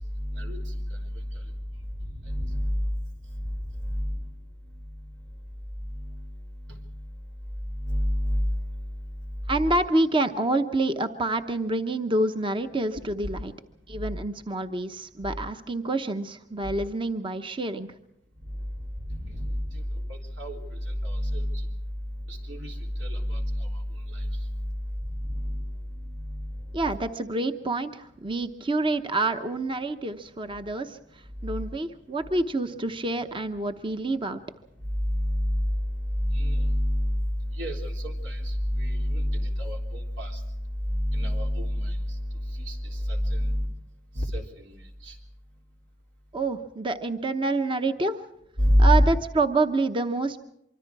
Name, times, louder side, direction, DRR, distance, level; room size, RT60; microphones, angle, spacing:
voice 1, 0.3-0.8 2.2-2.8 3.9-4.1 7.8-8.5 19.1-19.8 20.4-20.6 21.0-21.6 22.3-22.7 23.0-23.7 24.1-24.3 25.4-25.6 26.3-26.5 35.1-35.6 36.3-37.3 37.6-40.4 41.0-42.0 42.7-42.8 43.1-43.7 44.2-45.1 48.6-48.9, equal, 80° right, 1 dB, 3.8 m, -27 dB
voice 2, 9.5-13.5 13.9-17.9 26.7-31.0 31.4-34.4 46.3-48.2 48.8-50.4, right 2 dB, 30° right, 8 dB, 0.9 m, -27 dB
25.0 x 24.5 x 4.7 m, 0.80 s
head